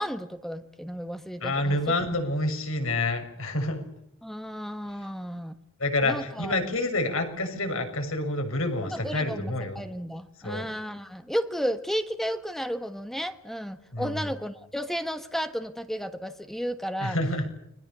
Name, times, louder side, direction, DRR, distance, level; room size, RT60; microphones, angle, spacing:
voice 1, 0.0-1.9 4.2-5.6 6.0-6.6 8.9-17.2, equal, ahead, 9 dB, 1.3 m, -33 dB
voice 2, 1.4-3.8 5.8-9.8 10.4-10.7 13.9-14.3 17.0-17.4, left 2 dB, 70° left, 6 dB, 6.7 m, -28 dB
30.0 x 23.0 x 6.9 m, 0.75 s
head